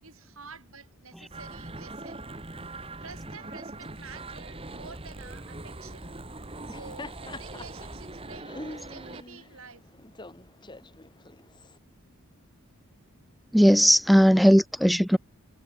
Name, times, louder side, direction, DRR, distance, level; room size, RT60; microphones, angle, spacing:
voice 1, 0.0-2.3 3.0-6.1 6.7-9.8, right 5 dB, 70° right, 7.4 m, -49 dB
sound 1, 1.3-9.2, right 2 dB, 25° right, 2.1 m, -41 dB
Laughter, 6.5-11.8, left 2 dB, 20° left, 1.9 m, -45 dB
voice 2, 13.5-15.2, equal, ahead, 0.8 m, -18 dB
head